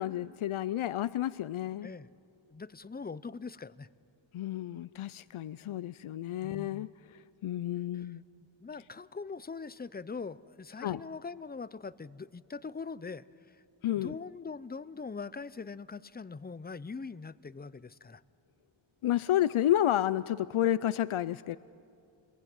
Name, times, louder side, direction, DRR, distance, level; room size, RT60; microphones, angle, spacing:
voice 1, 0.0-1.9 4.3-6.9 7.4-8.2 10.8-11.0 13.8-14.1 19.0-21.6, left 12 dB, 90° left, 16 dB, 0.6 m, -30 dB
voice 2, 2.5-3.9 6.4-6.8 7.9-8.1 8.6-13.2 13.9-18.2, left 4 dB, 20° left, 17 dB, 0.6 m, -42 dB
27.0 x 22.0 x 9.0 m, 2.6 s
wide cardioid pair, 90°, 48 cm